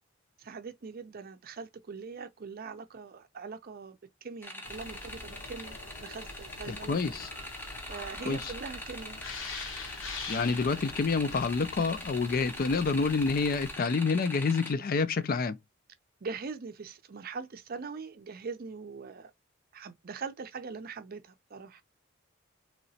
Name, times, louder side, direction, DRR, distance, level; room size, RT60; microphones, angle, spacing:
voice 1, 0.4-7.0 7.9-9.2 16.2-19.3 19.7-21.8, right 5 dB, 50° right, 0.5 m, -42 dB
sound 1, 4.4-14.7, left 1 dB, 10° left, 0.7 m, -43 dB
sound 2, 4.6-13.8, left 3 dB, 70° left, 1.0 m, -44 dB
voice 2, 6.7-7.3 8.3-8.5 10.3-15.6, left 4 dB, 45° left, 0.4 m, -28 dB
3.0 x 2.9 x 2.7 m
head